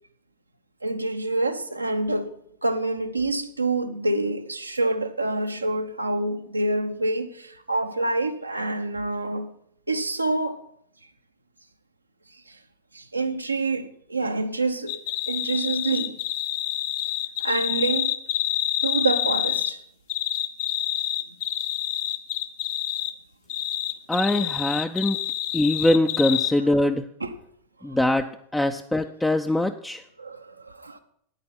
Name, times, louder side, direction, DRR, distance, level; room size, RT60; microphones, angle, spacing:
voice 1, 0.8-2.3 2.6-9.5 9.9-10.6 12.5-12.6 12.9-15.0 15.3-16.2 17.4-18.1 18.8-19.8 27.2-27.3 30.2-31.0, right 2 dB, 80° right, 0.8 m, -27 dB
sound 1, 14.9-19.7 20.1-23.1 23.5-26.5, left 12 dB, 50° left, 0.7 m, -27 dB
voice 2, 24.1-25.2 25.5-27.1 27.8-30.0, left 1 dB, 5° left, 0.4 m, -23 dB
9.4 x 8.9 x 5.8 m
figure-of-eight pair, 90°, 0 cm